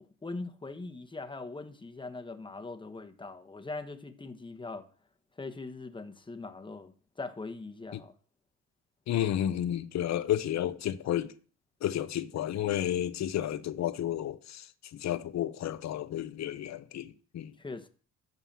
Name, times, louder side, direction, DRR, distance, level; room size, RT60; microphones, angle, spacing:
voice 1, 0.0-4.8 5.4-8.1 17.6-17.9, left 3 dB, 15° left, 1.1 m, -41 dB
voice 2, 9.1-11.3 11.8-14.7 14.9-17.5, left 11 dB, 65° left, 0.8 m, -31 dB
11.5 x 4.0 x 7.4 m
cardioid pair, 90°, 30 cm